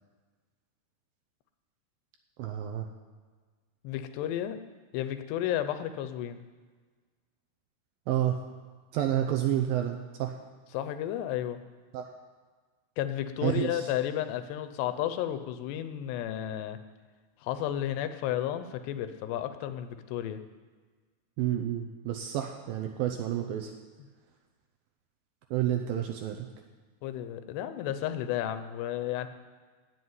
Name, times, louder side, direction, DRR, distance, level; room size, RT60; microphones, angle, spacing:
voice 1, 2.4-2.9 8.1-8.4 8.9-10.3 11.9-12.1 13.4-13.9 21.4-23.7 25.5-26.5, right 11 dB, 75° right, 4 dB, 2.2 m, -29 dB
voice 2, 3.8-4.6 4.9-6.4 10.7-11.6 13.0-16.8 17.4-20.4 27.0-29.3, left 11 dB, 85° left, 10 dB, 3.0 m, -32 dB
17.0 x 6.1 x 9.5 m, 1.4 s
omnidirectional pair, 4.8 m